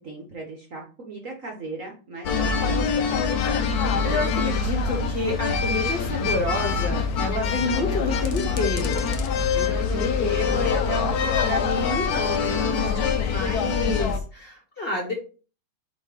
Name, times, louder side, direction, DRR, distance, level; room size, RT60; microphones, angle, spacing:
voice 1, 0.0-2.9 9.9-10.5, right 2 dB, 45° right, 1 dB, 1.2 m, -39 dB
sound 1, 2.2-14.2, left 5 dB, 60° left, 1.0 m, -24 dB
voice 2, 4.0-9.0 9.5-15.1, left 2 dB, 30° left, 0 dB, 1.3 m, -29 dB
4.4 x 4.4 x 5.1 m, 0.37 s
omnidirectional pair, 2.3 m